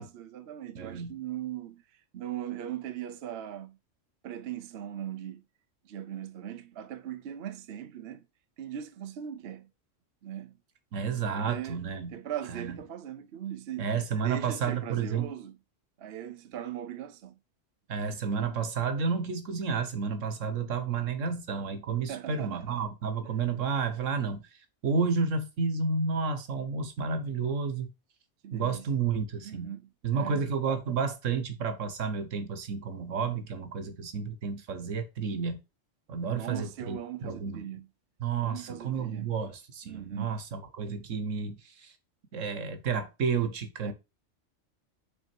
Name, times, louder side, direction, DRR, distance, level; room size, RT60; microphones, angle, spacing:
voice 1, 0.0-1.8 2.1-3.8 4.2-5.4 5.8-8.2 8.6-9.7 10.2-10.5 11.2-11.8 12.1-13.9 14.2-15.6 16.0-17.4 22.1-22.9 28.4-28.9 29.4-30.5 36.3-37.9 38.4-39.4 39.9-40.4 43.8-43.9, right 10 dB, 60° right, 0.8 m, -39 dB
voice 2, 0.7-1.1 10.9-12.1 12.5-12.8 13.8-15.3 17.9-24.4 24.8-27.9 28.5-29.7 30.0-35.6 36.1-37.6 38.2-41.9 42.3-43.9, right 5 dB, 80° right, 1.5 m, -31 dB
6.2 x 4.2 x 4.4 m
omnidirectional pair, 1.3 m